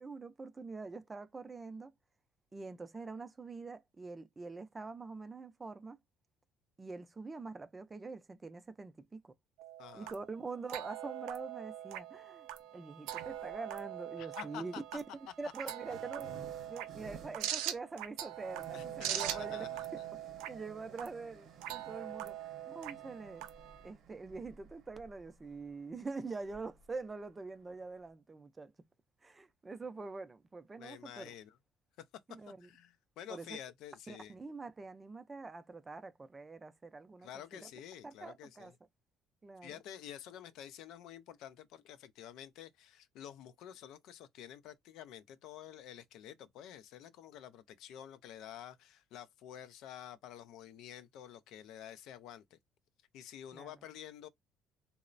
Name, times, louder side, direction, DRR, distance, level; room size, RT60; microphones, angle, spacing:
voice 1, 0.0-1.9 2.5-6.0 6.8-9.3 9.9-15.0 15.4-16.3 16.7-19.7 20.5-22.4 22.7-23.5 23.8-28.7 29.2-31.3 32.3-32.7 33.3-33.6 34.1-37.7 38.0-38.7 39.4-39.8 53.5-53.7, right 3 dB, 20° right, 0.4 m, -45 dB
sound 1, 9.6-23.9, right 12 dB, 90° right, 0.4 m, -42 dB
voice 2, 9.8-10.2 14.2-14.8 15.6-15.7 18.7-19.9 30.8-31.6 32.0-32.1 32.4-34.4 37.2-38.7 39.6-52.6 53.1-54.3, left 10 dB, 75° left, 0.3 m, -50 dB
sound 2, 13.2-13.6 14.6-28.1, right 6 dB, 60° right, 0.7 m, -56 dB
3.0 x 2.0 x 2.4 m
cardioid pair, 110°, 0 cm